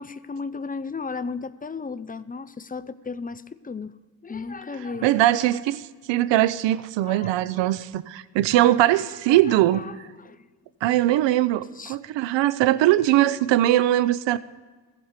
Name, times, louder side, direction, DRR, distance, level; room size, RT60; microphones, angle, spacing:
voice 1, 0.0-3.9 4.2-5.1 7.0-7.8 8.5-9.0 9.3-10.5 11.8-12.0, left 4 dB, 20° left, 0.6 m, -35 dB
voice 2, 5.0-9.8 10.8-14.4, right 14 dB, 80° right, 0.6 m, -21 dB
15.5 x 5.2 x 8.0 m
cardioid pair, 70°, 44 cm